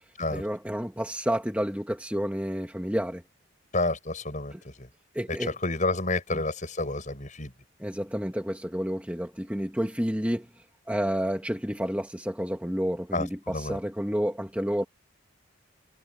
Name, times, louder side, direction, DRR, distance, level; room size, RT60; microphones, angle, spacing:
voice 1, 0.3-3.2 4.5-4.6 5.2-5.5 6.3-6.4 7.8-10.5 10.9-14.8, equal, 5° right, 1.9 m, -30 dB
voice 2, 3.7-4.9 5.3-7.5 13.1-13.8, left 2 dB, 35° left, 7.4 m, -30 dB
head